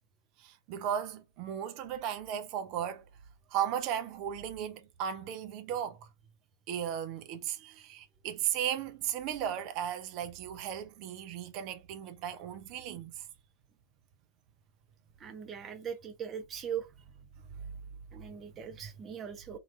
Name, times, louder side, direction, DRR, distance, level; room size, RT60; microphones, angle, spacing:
voice 1, 0.4-3.1 3.5-6.1 6.7-13.3 17.5-17.8 18.6-18.7, right 9 dB, 40° right, 0.8 m, -36 dB
voice 2, 15.2-16.9 18.1-19.6, right 8 dB, 25° right, 1.0 m, -40 dB
3.9 x 3.0 x 3.3 m
figure-of-eight pair, 90°, 0 cm